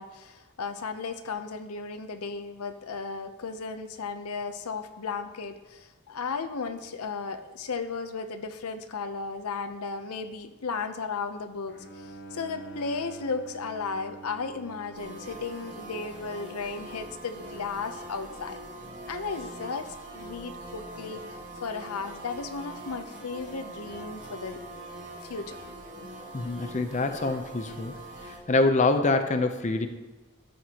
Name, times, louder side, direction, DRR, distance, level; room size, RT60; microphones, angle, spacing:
voice 1, 0.0-18.6 19.1-21.2 21.6-24.6 25.2-25.6, left 4 dB, 85° left, 8 dB, 0.7 m, -35 dB
Bowed string instrument, 11.7-18.7, right 3 dB, 50° left, 0.9 m, -47 dB
sound 1, 14.9-28.4, right 1 dB, 55° right, 2.4 m, -43 dB
voice 2, 26.3-28.0 28.2-29.9, left 2 dB, 35° left, 7 dB, 0.6 m, -25 dB
12.5 x 7.9 x 2.9 m, 1.2 s
head